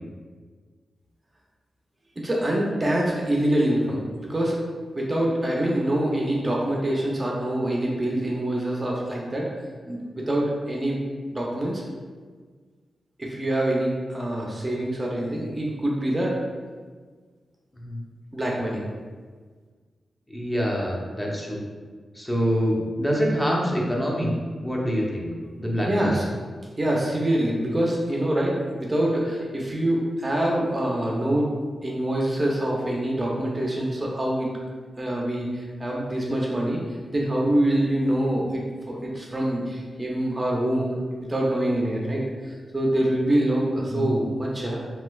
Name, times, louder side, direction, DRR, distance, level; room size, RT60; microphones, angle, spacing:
voice 1, 2.2-4.6 4.9-9.5 9.9-11.0 11.3-11.8 13.2-16.4 18.3-18.8 25.8-26.2 26.8-31.5 31.8-34.5 35.0-36.8 37.1-41.0 41.3-44.8, right 1 dB, 30° right, -2 dB, 0.5 m, -25 dB
voice 2, 20.3-21.6 22.1-24.3 24.6-25.3 25.6-26.2 43.9-44.2, equal, 15° left, -3 dB, 0.7 m, -25 dB
3.1 x 2.9 x 2.3 m, 1.5 s
cardioid pair, 60°, 0 cm